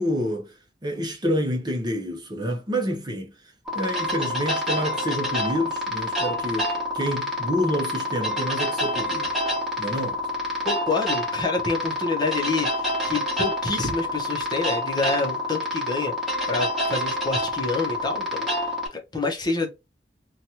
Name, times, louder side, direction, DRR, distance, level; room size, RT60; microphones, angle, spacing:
voice 1, 0.0-9.3 9.8-10.2, equal, 25° right, 0.7 m, -28 dB
sound 1, 3.7-18.9, left 1 dB, ahead, 1.2 m, -27 dB
voice 2, 10.6-16.1 16.5-19.7, left 3 dB, 25° left, 0.8 m, -28 dB
2.9 x 2.3 x 2.8 m
head